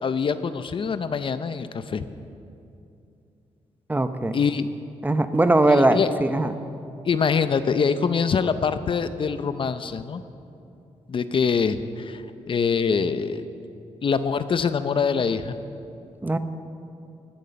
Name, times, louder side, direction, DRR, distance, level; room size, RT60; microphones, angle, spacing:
voice 1, 0.0-2.1 4.3-4.7 5.6-6.1 7.0-10.2 11.1-13.4 14.0-15.6, left 6 dB, 45° left, 11 dB, 0.6 m, -24 dB
voice 2, 3.9-4.4 5.0-6.5 16.2-16.4, right 2 dB, 15° right, 10 dB, 0.7 m, -20 dB
16.0 x 9.4 x 6.9 m, 2.6 s
cardioid pair, 95°, 12 cm